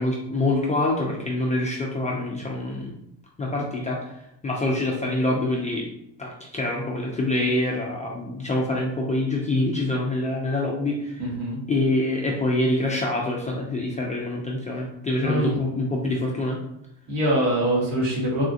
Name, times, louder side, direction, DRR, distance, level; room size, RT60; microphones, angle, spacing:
voice 1, 0.0-2.9 3.4-5.8 6.2-11.2 11.7-16.6, left 2 dB, 15° left, -3 dB, 0.4 m, -25 dB
voice 2, 11.2-11.6 15.2-15.6 17.1-18.4, right 1 dB, 55° right, -3 dB, 1.5 m, -24 dB
3.5 x 2.4 x 2.4 m, 0.78 s
hypercardioid pair, 75°, 50 cm